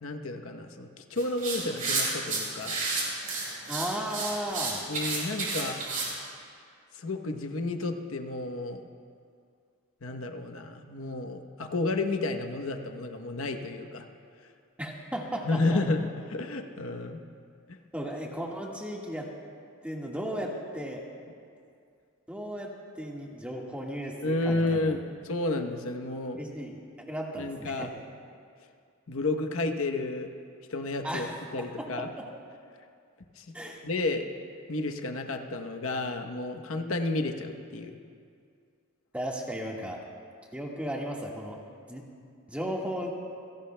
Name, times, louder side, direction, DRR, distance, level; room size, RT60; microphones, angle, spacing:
voice 1, 0.0-2.8 4.9-5.8 6.9-8.8 10.0-14.1 15.4-17.2 17.7-17.8 24.2-26.4 27.4-27.9 29.1-30.3 30.7-31.3 31.5-32.1 33.4-33.5 33.8-34.3 34.7-37.9, left 2 dB, 70° left, 4 dB, 0.9 m, -31 dB
sound 1, 1.2-6.1, right 3 dB, 40° right, 4.6 m, -31 dB
voice 2, 3.7-4.8 14.8-15.8 17.9-19.3 19.8-21.0 22.3-22.7 22.9-25.0 26.4-26.8 27.0-27.9 31.0-32.3 33.5-33.8 39.1-40.0 40.5-42.0 42.5-43.1, equal, 5° right, -2 dB, 1.5 m, -35 dB
28.0 x 17.5 x 2.2 m, 2.3 s
head